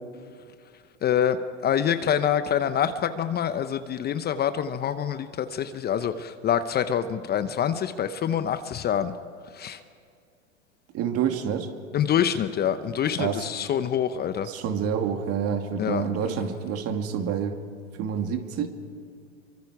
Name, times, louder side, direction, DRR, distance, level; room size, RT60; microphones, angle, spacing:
voice 1, 1.0-9.1 9.5-9.8 11.9-14.5 15.8-16.1, left 9 dB, 25° left, 11 dB, 0.9 m, -26 dB
voice 2, 10.9-11.7 13.2-13.5 14.5-17.6 18.0-18.7, right 7 dB, 40° right, 6 dB, 2.3 m, -28 dB
28.5 x 24.5 x 4.9 m, 2.1 s
hypercardioid pair, 105°, 37 cm